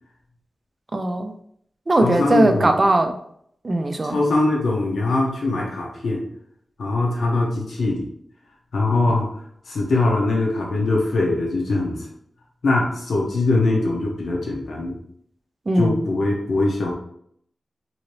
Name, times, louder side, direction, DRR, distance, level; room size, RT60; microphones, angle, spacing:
voice 1, 0.9-1.3 1.9-3.2 3.6-4.2 15.7-16.0, right 2 dB, 35° right, 6 dB, 0.4 m, -19 dB
voice 2, 2.0-2.7 4.0-6.2 6.8-8.1 8.7-9.3 9.7-12.0 12.6-15.0 15.8-16.9, left 2 dB, 85° left, -2 dB, 0.8 m, -22 dB
2.8 x 2.7 x 3.0 m, 0.67 s
wide cardioid pair, 110°, 0 cm